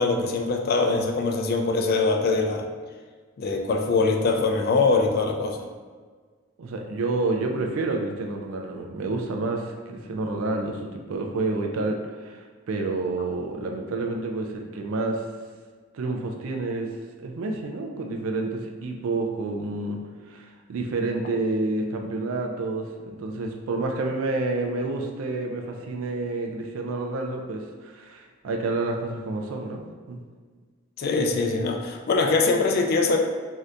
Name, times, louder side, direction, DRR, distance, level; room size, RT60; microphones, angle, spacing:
voice 1, 0.0-2.6 3.4-5.7 31.0-33.2, left 3 dB, 50° left, 3 dB, 0.3 m, -23 dB
voice 2, 6.6-15.3 15.9-16.9 17.2-30.2, right 2 dB, 85° right, 2 dB, 0.4 m, -29 dB
2.7 x 2.5 x 3.2 m, 1.5 s
head